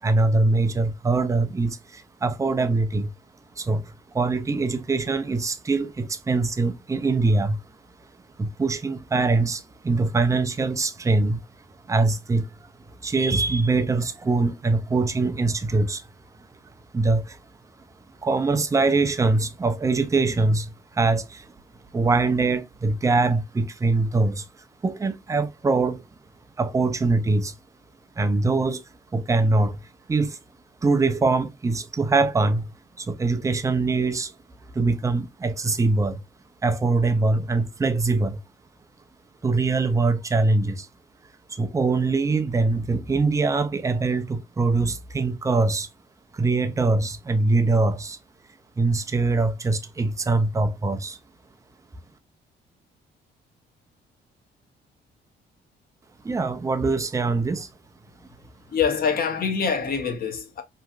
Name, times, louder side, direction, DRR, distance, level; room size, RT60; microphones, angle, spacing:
voice 1, 0.0-3.1 3.6-7.6 8.4-11.4 11.9-12.7 13.0-16.1 16.9-17.4 18.2-21.5 21.9-24.5 24.8-26.0 26.6-27.5 28.2-28.8 29.1-29.8 30.1-30.4 30.8-32.7 33.0-34.3 34.7-36.2 36.6-38.4 39.4-40.9 41.5-45.9 46.3-48.2 48.8-51.2 56.2-57.7, right 3 dB, 15° right, 0.4 m, -23 dB
voice 2, 58.7-60.6, left 6 dB, 50° left, 0.8 m, -25 dB
2.9 x 2.4 x 2.4 m
cardioid pair, 90°, 20 cm